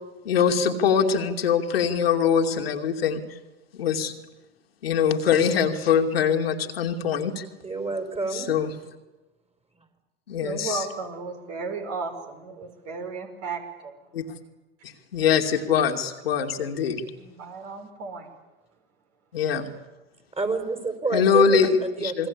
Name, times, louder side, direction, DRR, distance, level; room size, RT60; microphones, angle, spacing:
voice 1, 0.2-3.2 3.7-4.1 4.8-7.4 8.3-8.7 10.3-10.8 14.1-14.3 14.8-17.1 19.3-19.7 21.1-22.3, left 7 dB, 80° left, 3 dB, 2.6 m, -23 dB
voice 2, 7.6-8.5 20.3-22.3, right 3 dB, 20° right, 6 dB, 5.2 m, -28 dB
voice 3, 10.4-13.9 17.2-18.3, right 4 dB, 55° right, 4 dB, 6.0 m, -34 dB
28.5 x 21.0 x 8.7 m, 1.1 s
hypercardioid pair, 80°, 30 cm